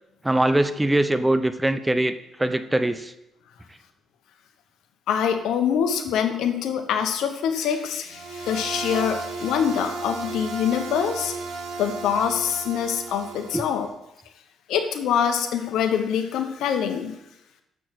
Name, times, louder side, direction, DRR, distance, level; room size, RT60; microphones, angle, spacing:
voice 1, 0.2-3.1 13.5-13.6, right 1 dB, 10° right, 11 dB, 0.6 m, -22 dB
voice 2, 5.1-11.3 11.8-13.9 14.7-17.1, left 8 dB, 85° left, 6 dB, 1.0 m, -24 dB
sound 1, 8.1-13.9, right 3 dB, 65° right, 1.4 m, -34 dB
7.2 x 6.3 x 6.0 m, 0.87 s
cardioid pair, 90°, 0 cm